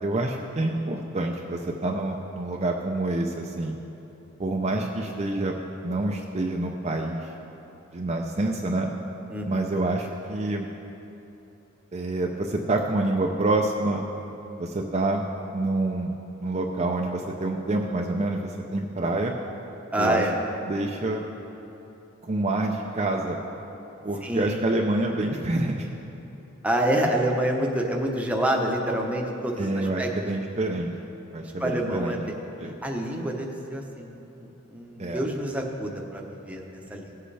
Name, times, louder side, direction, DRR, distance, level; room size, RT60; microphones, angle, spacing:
voice 1, 0.0-3.8 4.4-5.5 5.8-7.3 7.9-8.9 9.4-10.7 11.9-14.0 14.6-15.2 15.5-16.1 16.4-19.3 20.0-20.2 20.6-21.2 22.2-23.4 24.0-25.9 29.6-30.9 31.3-32.2 32.6-32.7 35.0-35.3, right 2 dB, 30° right, 0 dB, 0.5 m, -27 dB
voice 2, 9.3-9.7 19.9-20.4 24.2-24.7 26.6-30.1 31.6-32.2 32.8-37.2, right 1 dB, 5° right, 0 dB, 0.8 m, -27 dB
17.0 x 7.6 x 3.3 m, 3.0 s
head